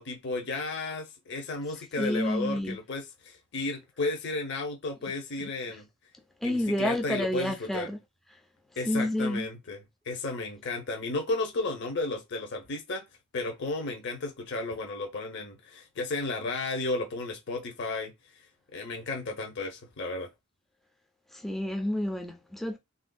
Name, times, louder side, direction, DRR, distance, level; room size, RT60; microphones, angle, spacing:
voice 1, 0.0-5.9 6.4-7.9 8.8-13.0 13.3-18.1 18.7-20.3, left 2 dB, 50° left, 0.7 m, -33 dB
voice 2, 2.0-2.8 5.4-5.5 6.4-8.0 8.9-9.5 21.3-22.8, left 1 dB, ahead, 0.3 m, -29 dB
3.3 x 2.5 x 2.2 m
head